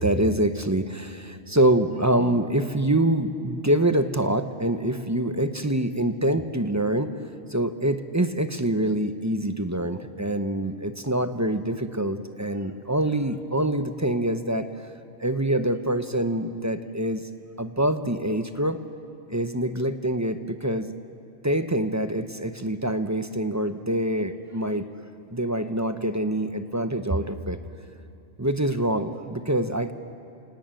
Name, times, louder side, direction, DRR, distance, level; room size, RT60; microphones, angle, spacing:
voice 1, 0.0-7.2 7.5-14.7 15.2-17.3 17.6-18.8 19.3-20.9 21.4-24.9 25.3-27.6 28.4-29.9, right 1 dB, 15° right, 9 dB, 0.7 m, -25 dB
28.5 x 18.5 x 9.0 m, 2.6 s
omnidirectional pair, 1.3 m